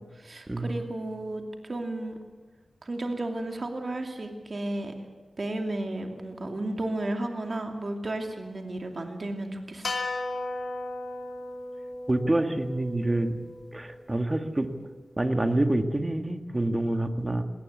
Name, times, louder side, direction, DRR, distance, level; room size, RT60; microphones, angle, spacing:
voice 1, 0.1-2.2 2.8-5.0 5.4-10.0, right 1 dB, 45° right, 4 dB, 2.6 m, -33 dB
sound 1, 9.8-14.2, left 2 dB, 70° left, 2.5 m, -36 dB
voice 2, 12.1-13.4 13.7-14.7 15.2-17.4, right 1 dB, 25° right, 7 dB, 1.9 m, -27 dB
20.5 x 18.5 x 8.3 m, 1.4 s
wide cardioid pair, 70°, 0 cm